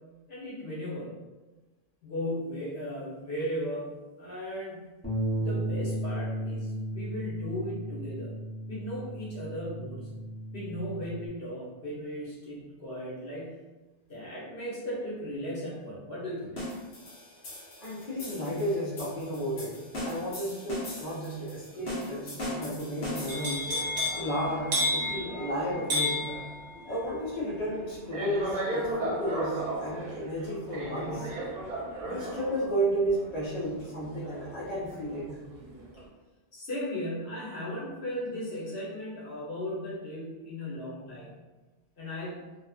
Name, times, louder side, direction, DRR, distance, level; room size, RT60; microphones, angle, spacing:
voice 1, 0.3-1.2 2.0-4.9 5.3-8.3 8.7-10.1 10.5-13.6 14.1-16.6 36.5-41.4 42.0-42.4, equal, 75° left, -7 dB, 1.1 m, -36 dB
Bass guitar, 5.0-11.3, right 1 dB, 5° left, 0.7 m, -34 dB
sound 1, 16.6-23.7, left 1 dB, 90° left, 1.1 m, -39 dB
voice 2, 17.8-19.7 20.0-23.7 24.1-26.2 26.9-31.3 32.0-35.4, right 1 dB, 45° left, -7 dB, 0.8 m, -33 dB
sound 2, 23.3-35.2 35.6-36.0, equal, 50° right, 0.5 m, -33 dB
2.5 x 2.4 x 2.4 m, 1.2 s
omnidirectional pair, 1.1 m